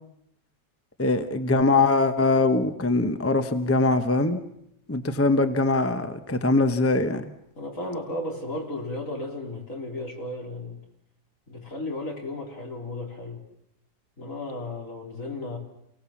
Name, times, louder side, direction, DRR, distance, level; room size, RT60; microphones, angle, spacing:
voice 1, 1.0-4.4 4.9-7.3, left 3 dB, 10° left, 8 dB, 0.6 m, -22 dB
voice 2, 7.6-10.8 11.5-13.4 14.2-15.6, left 2 dB, 45° left, 1 dB, 4.0 m, -34 dB
28.5 x 18.0 x 7.2 m, 0.77 s
omnidirectional pair, 2.0 m